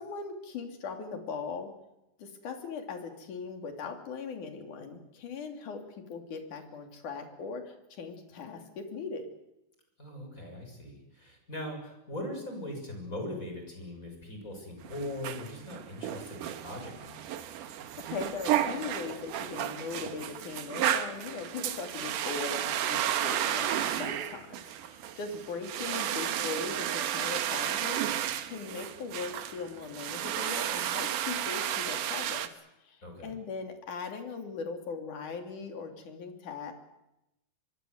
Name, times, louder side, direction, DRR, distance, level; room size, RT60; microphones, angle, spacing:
voice 1, 0.0-1.7 2.2-5.8 6.1-9.3 18.1-24.5 24.8-32.5 32.8-36.7, left 4 dB, 60° left, 4 dB, 4.3 m, -39 dB
voice 2, 10.0-17.5 33.0-33.4, left 1 dB, 20° left, 3 dB, 6.8 m, -40 dB
sound 1, 14.8-32.5, right 10 dB, 70° right, 2.6 m, -33 dB
25.0 x 22.5 x 8.0 m, 0.90 s
omnidirectional pair, 4.1 m